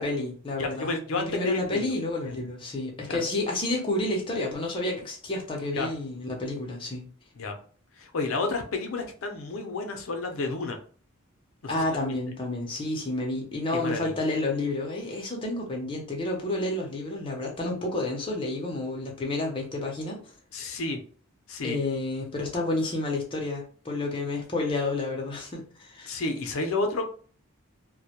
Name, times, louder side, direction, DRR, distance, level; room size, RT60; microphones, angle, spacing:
voice 1, 0.0-7.0 11.7-20.2 21.6-26.2, left 2 dB, 25° left, -1 dB, 0.6 m, -30 dB
voice 2, 0.6-1.9 3.1-3.2 5.7-5.9 7.4-7.6 8.0-10.8 11.6-11.8 13.7-14.2 20.5-21.0 21.5-21.8 26.1-27.1, left 3 dB, 75° left, 5 dB, 0.5 m, -30 dB
2.1 x 2.1 x 2.8 m, 0.42 s
head